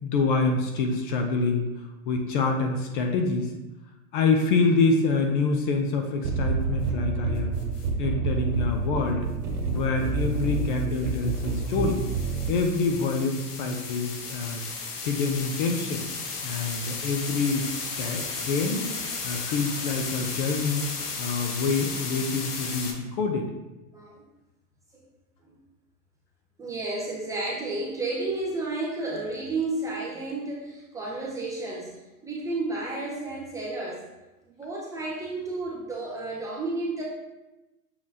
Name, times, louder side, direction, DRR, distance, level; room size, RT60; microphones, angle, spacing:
voice 1, 0.0-3.5 4.1-7.6 8.0-9.3 9.7-12.0 12.5-14.6 15.0-16.1 16.4-17.7 18.0-18.9 19.2-20.8 21.2-23.5, left 4 dB, 35° left, 4 dB, 0.6 m, -26 dB
sound 1, 6.2-12.6, right 4 dB, 50° right, 2.1 m, -28 dB
sound 2, 7.6-7.9 10.0-22.9, left 4 dB, 85° left, 1.3 m, -35 dB
voice 2, 23.9-24.2 25.4-25.5 26.6-31.9 32.2-34.0 34.4-37.0, right 2 dB, 5° right, -5 dB, 0.6 m, -32 dB
6.6 x 5.3 x 2.7 m, 1.0 s
hypercardioid pair, 140°, 45 cm